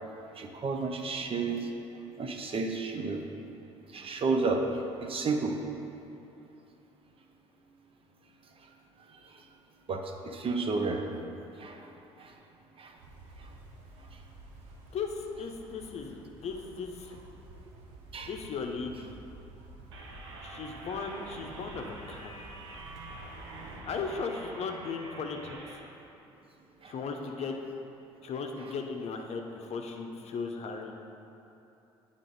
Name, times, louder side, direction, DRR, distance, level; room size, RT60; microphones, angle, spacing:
voice 1, 0.4-1.7 2.2-3.2 3.9-4.6 5.0-5.5 9.9-11.0 11.6-11.9 12.2-12.3 12.8-12.9 18.1-18.3 26.8-26.9, right 4 dB, 40° right, 3 dB, 0.7 m, -31 dB
sound 1, 13.0-23.8, right 1 dB, 65° right, 1.0 m, -51 dB
voice 2, 14.9-17.2 18.3-19.2 20.4-22.4 23.9-25.8 26.8-27.6 28.2-30.9, left 5 dB, 50° left, 3 dB, 0.7 m, -37 dB
sound 2, 19.9-25.8, right 2 dB, 90° right, 0.6 m, -46 dB
9.0 x 3.6 x 4.0 m, 2.9 s
hypercardioid pair, 55°, 14 cm